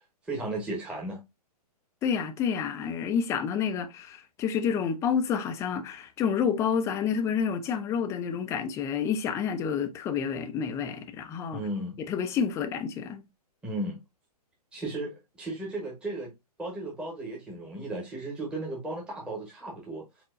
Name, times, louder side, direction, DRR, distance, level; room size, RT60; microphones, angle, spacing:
voice 1, 0.2-1.2 11.5-12.0 13.6-14.0 14.7-16.3 16.6-20.0, right 2 dB, 5° right, 1.1 m, -35 dB
voice 2, 2.0-11.6 12.0-13.2, left 7 dB, 15° left, 0.4 m, -29 dB
4.3 x 4.2 x 2.5 m
hypercardioid pair, 135°, 20 cm